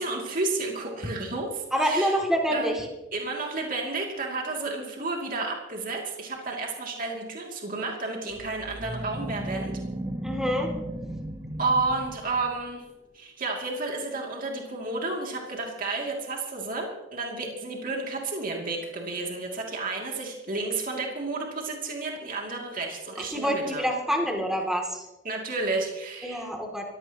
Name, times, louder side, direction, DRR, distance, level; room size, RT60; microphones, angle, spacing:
voice 1, 0.0-2.1 2.5-2.7 3.1-9.8 11.6-12.8 13.1-23.8 25.2-26.5, right 3 dB, 50° right, 0 dB, 2.8 m, -31 dB
voice 2, 1.7-2.8 10.2-10.7 23.3-25.1 26.2-26.8, equal, 5° right, 1 dB, 2.8 m, -26 dB
sound 1, 8.3-12.7, right 1 dB, 20° right, 1.0 m, -35 dB
23.0 x 16.0 x 3.1 m, 1.0 s
head